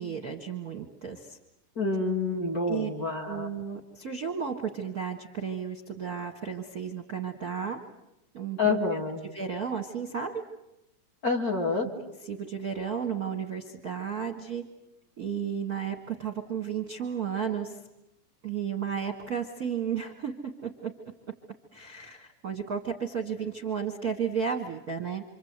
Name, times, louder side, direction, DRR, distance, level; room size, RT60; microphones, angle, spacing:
voice 1, 0.0-1.4 2.7-2.9 3.2-7.8 8.3-9.0 9.3-10.4 11.8-14.6 15.2-17.8 18.4-20.9 21.7-25.2, right 7 dB, 40° right, 4 dB, 1.4 m, -33 dB
voice 2, 1.8-3.5 8.6-9.2 11.2-11.9, left 3 dB, 30° left, 1 dB, 2.4 m, -27 dB
27.0 x 26.5 x 8.1 m, 0.88 s
omnidirectional pair, 3.5 m